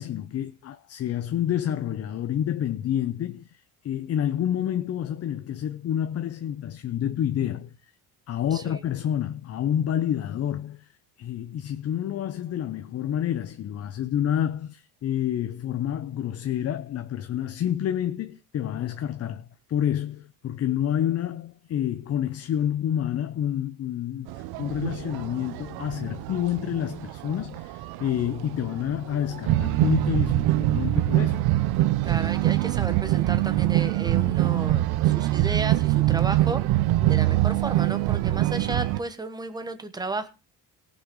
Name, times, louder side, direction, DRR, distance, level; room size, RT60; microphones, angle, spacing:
voice 1, 0.0-3.5 3.8-7.7 8.3-10.9 11.2-31.5, left 10 dB, 40° left, 0.8 m, -28 dB
voice 2, 8.5-8.8 32.0-36.6 37.1-40.3, right 2 dB, 10° right, 1.5 m, -33 dB
sound 1, 24.3-39.0, right 15 dB, 80° right, 0.9 m, -24 dB
18.0 x 6.3 x 5.5 m
cardioid pair, 145°, 37 cm